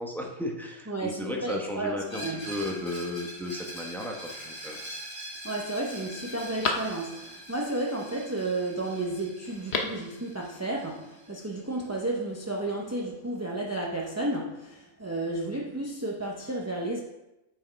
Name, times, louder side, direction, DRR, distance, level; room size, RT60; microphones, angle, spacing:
voice 1, 0.0-4.8, left 1 dB, ahead, 0 dB, 0.8 m, -34 dB
voice 2, 0.9-2.4 5.4-17.0, right 2 dB, 20° right, -1 dB, 0.5 m, -32 dB
Screech, 2.1-11.7, equal, 20° left, 3.0 m, -43 dB
Telephone, 4.3-4.9 5.4-5.5 5.9-7.4 9.4-10.1 10.4-10.5, left 4 dB, 50° left, 1.1 m, -34 dB
7.9 x 5.9 x 4.6 m, 0.96 s
omnidirectional pair, 1.5 m